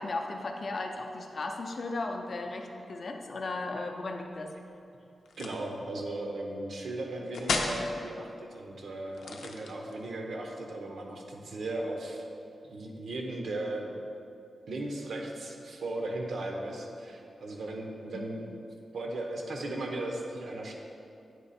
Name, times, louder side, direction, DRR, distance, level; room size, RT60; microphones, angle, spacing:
voice 1, 0.0-4.5 18.1-18.3, left 2 dB, 40° left, 3 dB, 0.4 m, -36 dB
sound 1, 5.3-5.7 7.3-7.8 9.1-10.0, left 4 dB, 90° left, 0.5 m, -33 dB
voice 2, 5.4-12.3 12.6-13.9 14.7-18.5 18.9-20.7, right 1 dB, 60° right, 1 dB, 0.7 m, -37 dB
8.9 x 3.3 x 4.1 m, 2.6 s
wide cardioid pair, 170°, 0 cm